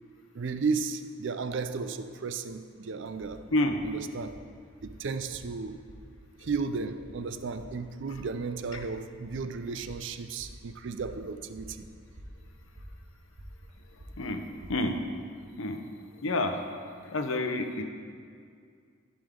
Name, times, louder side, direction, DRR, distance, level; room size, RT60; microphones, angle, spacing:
voice 1, 0.3-3.5 3.8-4.5 4.8-5.8 6.4-11.9, right 4 dB, 60° right, 0.4 m, -34 dB
sound 1, 3.0-14.9, equal, 85° right, 1.5 m, -50 dB
voice 2, 16.2-16.6 17.0-17.8, left 2 dB, 70° left, 0.7 m, -28 dB
14.0 x 5.2 x 3.7 m
head